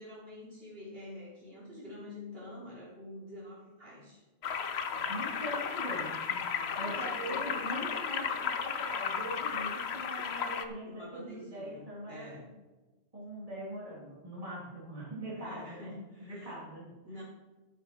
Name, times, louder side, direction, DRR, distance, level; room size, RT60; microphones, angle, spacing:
voice 1, 0.0-4.2 4.9-5.3 6.5-7.7 10.9-12.5 15.3-16.6 17.0-17.2, left 1 dB, 55° right, -6 dB, 3.5 m, -47 dB
sound 1, 4.4-10.7, left 6 dB, 65° left, 1.0 m, -34 dB
voice 2, 5.1-12.3 13.1-15.9 16.2-16.9, equal, 30° right, -6 dB, 3.2 m, -42 dB
12.5 x 7.8 x 4.6 m, 1.2 s
omnidirectional pair, 1.2 m